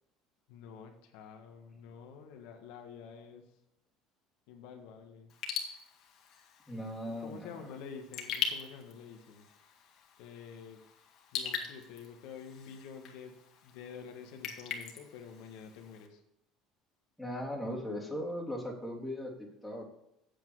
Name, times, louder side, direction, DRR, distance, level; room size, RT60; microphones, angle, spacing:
voice 1, 0.5-3.6 4.5-5.3 7.0-9.5 10.2-10.8 11.3-13.4 13.6-16.2, left 6 dB, 75° left, 4 dB, 1.4 m, -48 dB
Raindrop / Drip, 5.3-16.1, left 7 dB, 60° left, 1.9 m, -42 dB
voice 2, 6.7-7.5 17.2-19.8, equal, 5° left, -4 dB, 3.3 m, -38 dB
8.5 x 8.1 x 4.7 m, 0.82 s
supercardioid pair, 100°, 0 cm